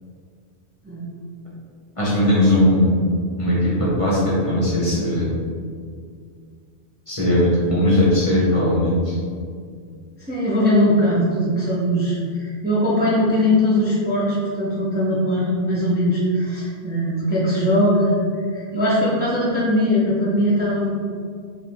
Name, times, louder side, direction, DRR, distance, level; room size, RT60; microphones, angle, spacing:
voice 1, 2.0-3.1 3.4-5.3 7.1-9.2, left 1 dB, 30° left, -8 dB, 0.9 m, -18 dB
voice 2, 10.3-18.2 18.5-20.9, equal, 10° right, -8 dB, 0.7 m, -20 dB
4.3 x 2.6 x 3.4 m, 2.1 s
omnidirectional pair, 1.1 m